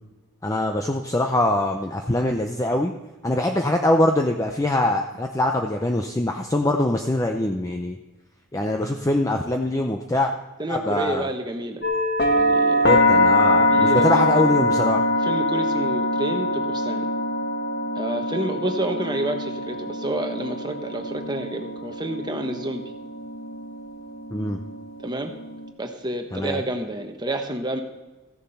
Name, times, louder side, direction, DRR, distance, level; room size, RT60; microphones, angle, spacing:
voice 1, 0.4-2.9 3.2-8.0 8.5-10.3 10.7-11.3 12.8-15.0 24.3-24.6 26.3-26.6, left 1 dB, 15° left, 3 dB, 0.5 m, -23 dB
voice 2, 10.6-11.9 12.3-12.9 13.7-14.6 15.2-17.1 17.9-22.8 25.0-25.3 25.8-27.8, right 1 dB, 20° right, 4 dB, 1.1 m, -29 dB
sound 1, 11.8-25.7, left 1 dB, 50° left, 1.4 m, -23 dB
15.0 x 7.2 x 5.6 m, 1.2 s
head